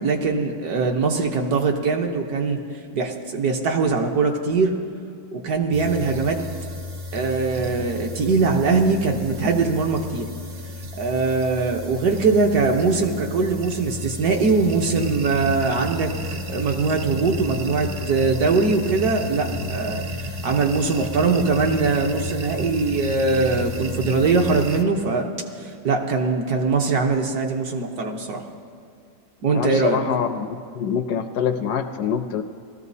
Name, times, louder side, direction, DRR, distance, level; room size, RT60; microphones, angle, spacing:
voice 1, 0.0-2.6 2.9-4.8 5.3-6.4 7.1-10.3 11.0-25.3 25.6-28.4 29.4-30.0, right 4 dB, 65° right, 2 dB, 1.4 m, -22 dB
sound 1, 5.7-24.8, equal, 45° right, 0.9 m, -32 dB
voice 2, 29.5-32.4, left 7 dB, 70° left, 7 dB, 1.0 m, -25 dB
18.0 x 14.0 x 2.7 m, 2.3 s
omnidirectional pair, 1.9 m